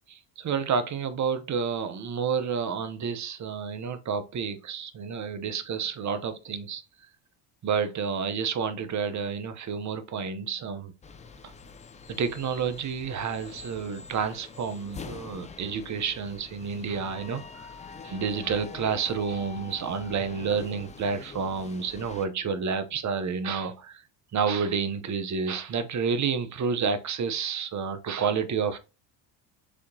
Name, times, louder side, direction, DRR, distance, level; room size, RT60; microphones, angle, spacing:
voice 1, 0.1-6.8 7.6-10.9 12.1-17.4 18.0-24.0 24.3-28.8, right 6 dB, 35° right, 0.8 m, -30 dB
sound 1, 11.0-22.3, left 5 dB, 15° left, 0.4 m, -45 dB
6.3 x 2.9 x 2.7 m
supercardioid pair, 80°, 49 cm